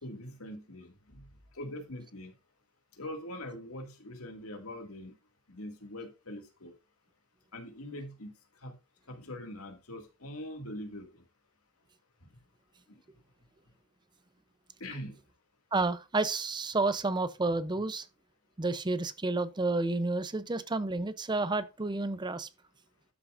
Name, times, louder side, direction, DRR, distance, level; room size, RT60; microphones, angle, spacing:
voice 1, 0.0-1.3 1.6-2.3 3.0-5.1 5.5-6.7 7.5-8.3 8.6-8.8 9.1-11.2 14.8-15.2, left 1 dB, 90° left, 2.2 m, -42 dB
voice 2, 15.7-18.1 18.6-22.5, right 3 dB, 20° right, 0.6 m, -30 dB
12.0 x 6.7 x 2.5 m
head